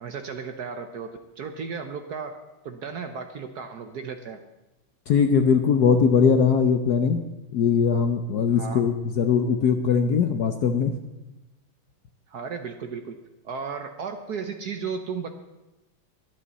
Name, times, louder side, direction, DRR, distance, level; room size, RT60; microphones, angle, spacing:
voice 1, 0.0-1.1 1.4-4.4 8.4-8.9 12.3-13.2 13.4-15.3, right 5 dB, 60° right, 7 dB, 1.1 m, -34 dB
voice 2, 5.1-7.2 7.5-10.9, left 6 dB, 65° left, 7 dB, 1.0 m, -20 dB
23.5 x 8.8 x 4.1 m, 1.0 s
omnidirectional pair, 2.4 m